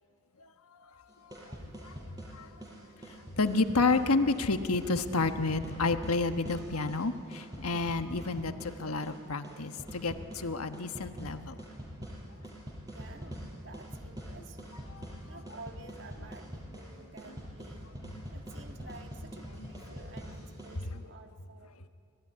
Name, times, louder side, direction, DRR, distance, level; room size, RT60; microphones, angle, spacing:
voice 1, 0.4-2.6 3.1-11.6 14.9-15.2 17.3-17.4 18.0-18.2 19.6-19.7 20.8-21.0, left 3 dB, 90° left, 7 dB, 1.3 m, -31 dB
sound 1, 1.1-20.8, equal, 15° right, 5.7 m, -44 dB
voice 2, 12.9-14.7 15.3-17.9 18.3-21.8, right 2 dB, 55° right, 5 dB, 1.7 m, -52 dB
25.5 x 18.5 x 9.8 m, 2.3 s
head